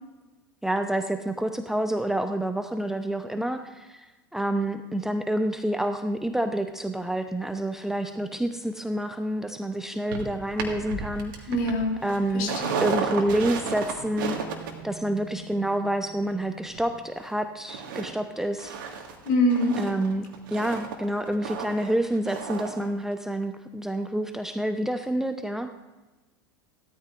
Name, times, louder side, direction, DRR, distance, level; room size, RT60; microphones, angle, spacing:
voice 1, 0.6-4.1 4.3-11.5 12.0-12.5 12.8-14.4 14.8-18.7 19.8-25.7, right 1 dB, 5° right, 7 dB, 0.7 m, -28 dB
sound 1, 10.1-17.3 17.7-18.1 18.4-22.9 23.1-23.2, right 6 dB, 65° right, 1.9 m, -34 dB
voice 2, 11.5-12.0 12.3-13.0 19.2-19.8, left 1 dB, 55° left, 1 dB, 3.0 m, -24 dB
17.0 x 13.0 x 2.6 m, 1.1 s
figure-of-eight pair, 80°, 12 cm